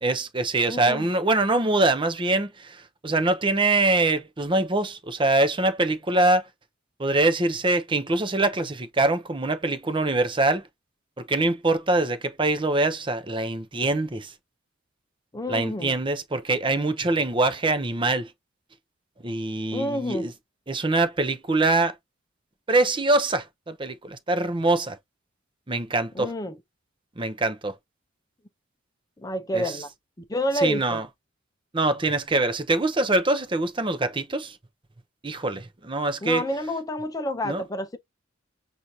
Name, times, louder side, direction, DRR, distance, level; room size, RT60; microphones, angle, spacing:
voice 1, 0.0-6.4 7.0-10.6 11.3-14.3 15.5-18.3 19.2-20.3 20.7-21.9 22.7-25.0 25.7-26.3 27.2-27.7 29.5-29.6 30.6-31.0 31.7-34.6 35.2-36.4 37.4-37.6, right 2 dB, 25° right, 0.6 m, -24 dB
voice 2, 0.7-1.1 15.3-15.9 19.7-20.3 26.1-26.5 29.2-29.9 30.3-31.0 36.2-38.0, equal, 20° left, 0.6 m, -29 dB
6.1 x 2.6 x 2.7 m
head